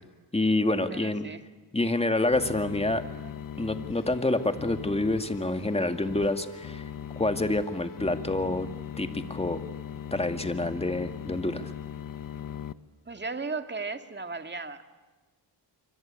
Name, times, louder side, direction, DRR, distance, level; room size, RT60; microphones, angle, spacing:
voice 1, 0.3-1.3 1.7-3.0 3.6-6.8 7.2-8.7 9.0-9.6 10.1-11.7, left 2 dB, 15° left, 8 dB, 2.0 m, -27 dB
voice 2, 0.9-1.4 13.1-14.8, right 4 dB, 25° right, 7 dB, 2.1 m, -35 dB
sound 1, 2.3-12.7, left 9 dB, 50° left, 1.2 m, -40 dB
26.0 x 24.5 x 8.9 m, 1.3 s
cardioid pair, 80°, 42 cm